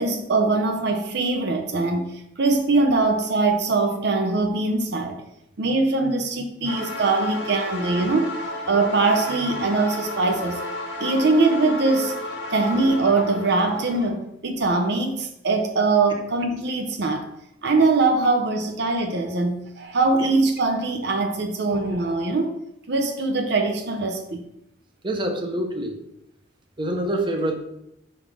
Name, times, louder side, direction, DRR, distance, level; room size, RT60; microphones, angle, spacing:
voice 1, 0.0-5.2 5.6-10.6 11.0-12.1 12.5-17.3 17.6-22.6 22.9-24.4, right 3 dB, 65° right, 0.7 m, -22 dB
sound 1, 6.6-14.1, left 1 dB, 75° left, 1.4 m, -32 dB
voice 2, 25.0-26.0 26.8-27.6, right 1 dB, 25° right, 0.8 m, -25 dB
4.8 x 4.0 x 5.2 m
head